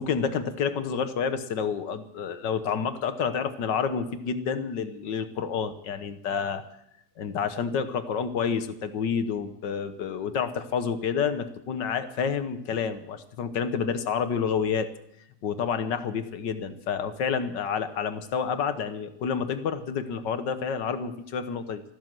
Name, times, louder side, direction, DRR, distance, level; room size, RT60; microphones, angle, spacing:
voice 1, 0.0-6.6 7.2-14.9 15.4-21.8, left 6 dB, 80° left, 10 dB, 1.8 m, -29 dB
14.5 x 13.0 x 7.5 m, 0.76 s
omnidirectional pair, 1.9 m